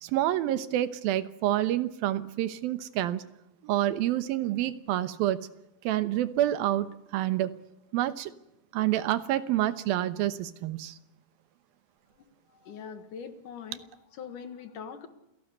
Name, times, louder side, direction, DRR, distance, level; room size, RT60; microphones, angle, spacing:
voice 1, 0.0-3.2 3.6-5.4 5.8-7.5 7.9-8.3 8.7-11.0, right 13 dB, 85° right, 13 dB, 2.9 m, -28 dB
voice 2, 12.6-15.1, left 6 dB, 65° left, 10 dB, 3.1 m, -42 dB
28.0 x 17.5 x 8.1 m, 0.88 s
omnidirectional pair, 4.1 m